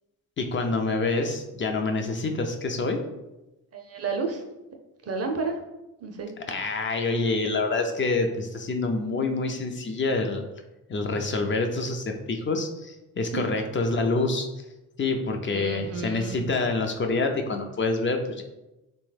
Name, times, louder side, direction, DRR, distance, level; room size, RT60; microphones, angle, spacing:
voice 1, 0.4-3.0 6.5-10.4 10.9-14.5 15.0-18.4, left 3 dB, 30° left, 4 dB, 0.5 m, -27 dB
voice 2, 3.7-4.4 5.0-5.6 6.0-6.4 13.3-13.6 15.5-16.5, right 4 dB, 40° right, 3 dB, 0.6 m, -31 dB
3.4 x 2.2 x 3.2 m, 0.99 s
supercardioid pair, 60°, 38 cm